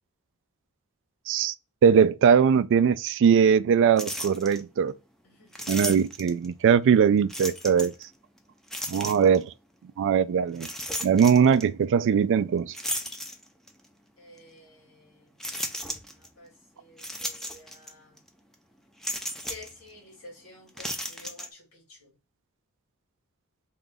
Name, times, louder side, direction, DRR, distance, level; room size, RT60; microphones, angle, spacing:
voice 1, 1.8-4.9 5.7-7.9 8.9-9.5 10.0-10.7 11.0-12.7, right 7 dB, 55° right, 0.3 m, -21 dB
sound 1, 4.0-4.6 5.5-6.5 7.3-8.0 8.7-9.4 10.5-11.6 12.7-13.8 14.4-14.5 15.4-16.3 17.0-17.9 18.2-18.3 19.0-19.7 20.7-21.5, equal, ahead, 0.5 m, -34 dB
voice 2, 5.2-5.8 8.8-9.4 14.2-18.2 19.5-22.2, left 2 dB, 65° left, 2.4 m, -51 dB
3.7 x 2.3 x 3.8 m
head